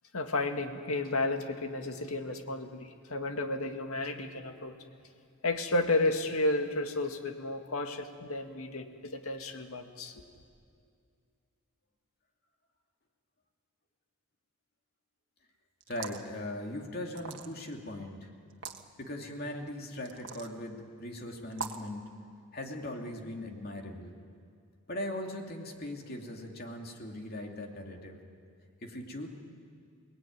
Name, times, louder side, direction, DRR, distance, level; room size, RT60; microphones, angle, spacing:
voice 1, 0.1-4.8 5.4-10.2, left 2 dB, 80° left, 5 dB, 2.0 m, -32 dB
sound 1, 15.8-16.3 17.1-17.7 18.5-18.8 20.1-20.5 21.5-21.9, right 5 dB, 55° right, 1.6 m, -41 dB
voice 2, 15.9-18.3 19.0-22.0 22.5-24.2 24.9-28.2 28.8-29.3, left 1 dB, 45° left, 2 dB, 2.8 m, -39 dB
29.0 x 19.5 x 9.5 m, 2.3 s
head